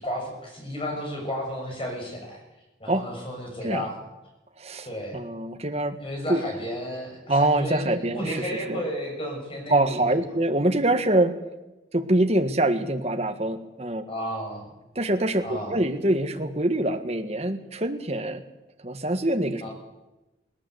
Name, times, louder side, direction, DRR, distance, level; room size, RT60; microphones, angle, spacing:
voice 1, 0.0-2.4 2.8-4.0 4.8-5.2 6.0-10.0 14.1-14.7 15.4-15.7 19.6-19.7, equal, 30° left, 0 dB, 6.8 m, -33 dB
voice 2, 5.1-6.0 6.3-6.4 7.3-8.8 9.7-11.4 11.9-14.0 14.9-18.4 18.8-19.7, right 1 dB, 35° right, 6 dB, 1.6 m, -24 dB
19.0 x 19.0 x 8.0 m, 1.0 s
head